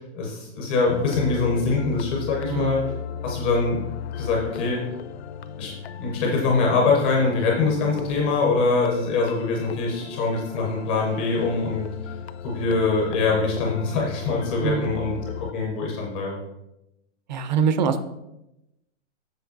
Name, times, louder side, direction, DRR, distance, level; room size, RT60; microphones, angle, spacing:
voice 1, 0.0-2.8 3.2-3.8 4.2-4.8 5.6-5.7 6.0-12.1 12.4-16.4, left 3 dB, 10° left, -2 dB, 0.4 m, -24 dB
sound 1, 0.9-15.5, left 8 dB, 60° left, 0.5 m, -36 dB
voice 2, 2.5-2.9 14.6-15.0 17.3-18.1, right 6 dB, 40° right, 10 dB, 0.6 m, -24 dB
7.2 x 6.5 x 3.9 m, 0.89 s
hypercardioid pair, 160°, 36 cm